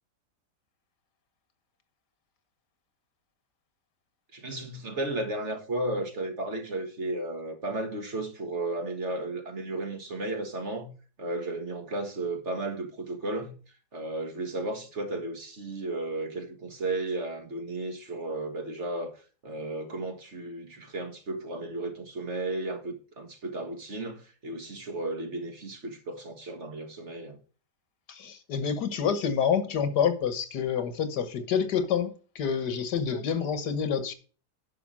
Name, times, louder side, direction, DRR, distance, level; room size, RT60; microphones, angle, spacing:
voice 1, 4.3-10.9 11.2-13.6 13.9-19.2 19.4-27.4 33.1-33.2, right 2 dB, 45° right, 1.8 m, -34 dB
voice 2, 28.1-34.1, left 7 dB, 80° left, 1.8 m, -28 dB
11.0 x 4.8 x 6.1 m
omnidirectional pair, 1.7 m